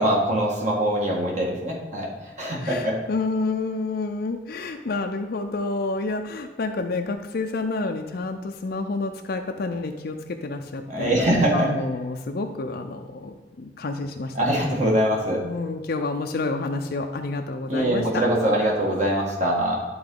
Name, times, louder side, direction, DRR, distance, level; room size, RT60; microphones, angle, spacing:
voice 1, 0.0-2.1 2.4-3.0 10.9-11.7 14.3-15.4 17.7-19.8, right 1 dB, 45° right, -3 dB, 1.6 m, -23 dB
voice 2, 2.6-11.2 11.5-14.4 15.4-18.2, left 3 dB, 60° left, 4 dB, 0.5 m, -29 dB
11.5 x 3.9 x 3.8 m, 1.3 s
head